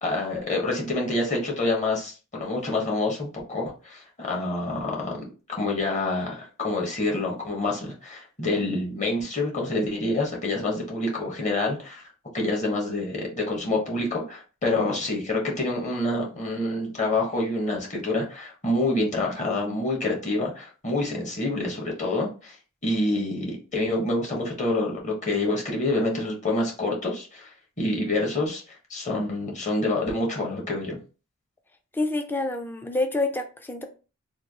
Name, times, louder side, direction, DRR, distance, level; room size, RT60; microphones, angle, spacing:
voice 1, 0.0-12.0 12.3-22.5 22.8-27.5 27.8-28.6 28.9-31.0, left 2 dB, 35° left, -1 dB, 1.1 m, -27 dB
voice 2, 31.9-33.9, left 2 dB, 10° left, 5 dB, 0.3 m, -27 dB
3.2 x 2.3 x 3.5 m, 0.35 s
head